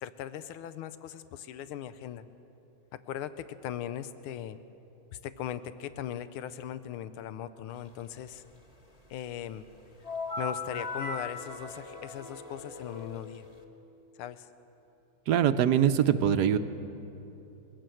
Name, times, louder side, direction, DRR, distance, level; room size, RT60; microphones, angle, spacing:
voice 1, 0.0-2.2 3.1-4.6 5.2-8.4 9.1-9.7 10.4-13.5 14.2-14.5, left 10 dB, 90° left, 12 dB, 1.6 m, -39 dB
sound 1, 10.0-13.6, left 3 dB, 20° left, 1.4 m, -39 dB
voice 2, 15.3-16.6, right 9 dB, 70° right, 10 dB, 1.0 m, -23 dB
22.0 x 17.0 x 7.7 m, 2.9 s
omnidirectional pair, 2.3 m